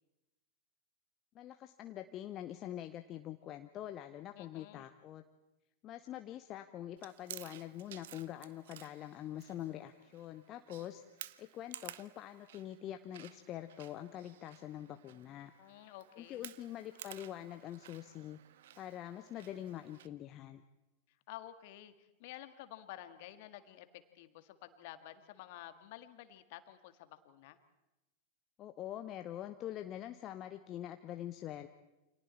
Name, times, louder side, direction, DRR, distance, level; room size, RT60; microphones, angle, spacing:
voice 1, 1.3-5.2 5.8-11.0 11.4-15.5 16.2-18.4 18.8-20.6 28.6-31.7, left 12 dB, 35° left, 8 dB, 0.9 m, -45 dB
voice 2, 4.3-4.9 15.6-16.5 21.3-27.6, left 13 dB, 50° left, 10 dB, 1.8 m, -51 dB
Chewing mastication, 7.0-20.1, right 12 dB, 55° right, 0.7 m, -54 dB
29.0 x 26.5 x 4.4 m, 0.98 s
figure-of-eight pair, 90°, 0 cm